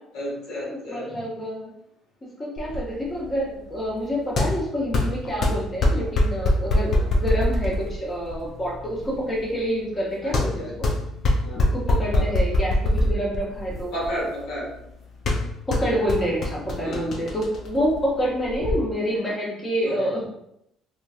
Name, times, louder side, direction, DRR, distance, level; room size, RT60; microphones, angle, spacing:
voice 1, 0.1-1.4 2.7-2.8 6.9-7.1 10.2-10.8 11.4-12.2 13.9-14.7 16.8-17.3 19.8-20.2, equal, 75° left, -5 dB, 1.3 m, -34 dB
voice 2, 0.9-1.7 2.4-10.7 11.6-13.9 15.7-20.2, equal, 25° left, -4 dB, 0.9 m, -27 dB
sound 1, 2.6-18.7, left 1 dB, 55° left, 0.5 m, -25 dB
2.8 x 2.6 x 2.4 m, 0.77 s
supercardioid pair, 80°, 0 cm